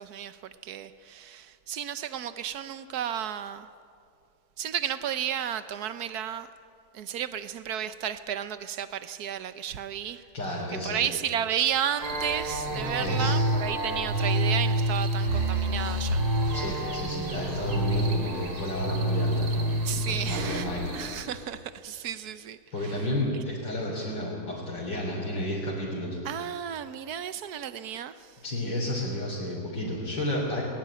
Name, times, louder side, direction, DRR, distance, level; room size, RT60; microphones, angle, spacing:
voice 1, 0.0-3.7 4.6-6.5 6.9-16.2 19.9-23.0 26.2-28.3, right 9 dB, 60° right, 1.1 m, -33 dB
voice 2, 10.1-11.1 13.0-13.4 16.5-21.3 22.7-26.2 28.4-30.6, left 1 dB, 60° left, 4.2 m, -32 dB
sound 1, 12.0-21.2, right 1 dB, 85° right, 3.5 m, -28 dB
20.0 x 19.0 x 8.8 m
omnidirectional pair, 2.3 m